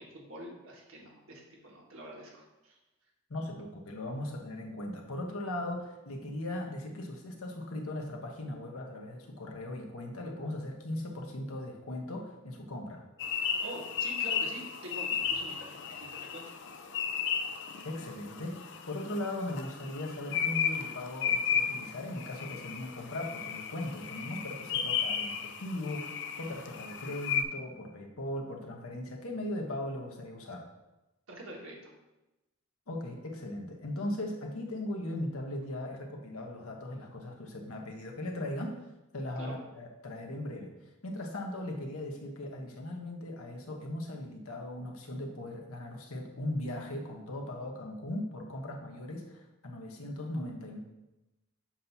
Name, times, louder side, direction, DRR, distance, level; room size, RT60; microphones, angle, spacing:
voice 1, 0.0-2.8 13.6-16.4 31.3-31.9 39.4-39.5, right 1 dB, 70° right, -1 dB, 1.5 m, -46 dB
voice 2, 3.3-13.0 17.8-30.7 32.9-38.8 39.1-40.7 41.0-50.8, left 1 dB, 80° left, 2 dB, 1.1 m, -38 dB
sound 1, 13.2-27.4, left 7 dB, 55° left, 0.5 m, -34 dB
7.3 x 2.8 x 5.8 m, 1.0 s
head